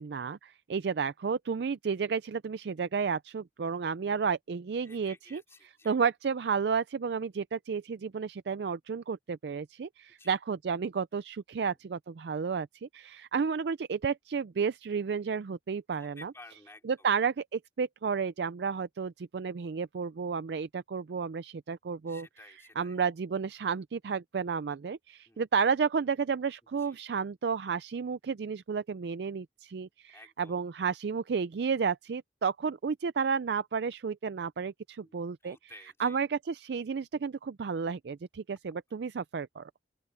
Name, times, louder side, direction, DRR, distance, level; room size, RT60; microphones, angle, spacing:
voice 1, 0.0-16.3 16.8-35.6 36.0-39.7, right 6 dB, 65° right, 0.4 m, -32 dB
voice 2, 4.8-6.0 10.2-10.4 11.6-11.7 16.0-17.1 22.1-23.0 25.3-25.4 26.8-27.0 30.1-30.6 35.0-36.2, left 2 dB, 15° left, 3.6 m, -54 dB
open air
head